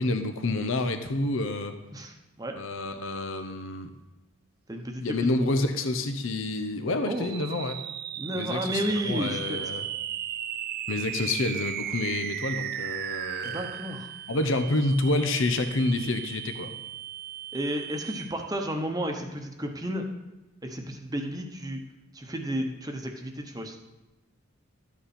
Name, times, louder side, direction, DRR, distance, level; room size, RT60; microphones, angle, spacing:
voice 1, 0.0-1.7 2.6-3.9 5.0-7.8 8.3-9.9 10.9-13.6 14.3-16.7, left 2 dB, 70° left, 8 dB, 0.8 m, -28 dB
voice 2, 1.9-2.5 4.7-5.3 7.0-7.3 8.2-9.6 13.4-14.1 17.5-20.1 20.6-21.8 22.1-23.8, equal, 20° right, 3 dB, 1.0 m, -32 dB
sound 1, 7.1-18.6, right 10 dB, 45° right, 0.4 m, -36 dB
12.5 x 8.4 x 4.3 m, 1.0 s
head